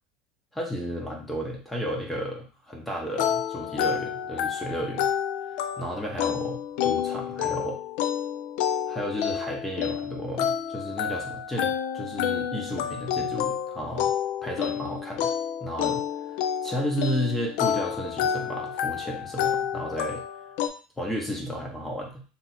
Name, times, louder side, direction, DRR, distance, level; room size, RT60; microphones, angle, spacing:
voice 1, 0.5-5.1 5.8-7.8 8.9-14.1 14.4-15.3 15.6-16.0 16.3-20.2 21.0-22.2, equal, 5° left, -1 dB, 0.7 m, -33 dB
sound 1, 3.2-20.7, left 9 dB, 70° left, 0.4 m, -29 dB
2.8 x 2.4 x 4.1 m, 0.38 s
cardioid pair, 150°, 3 cm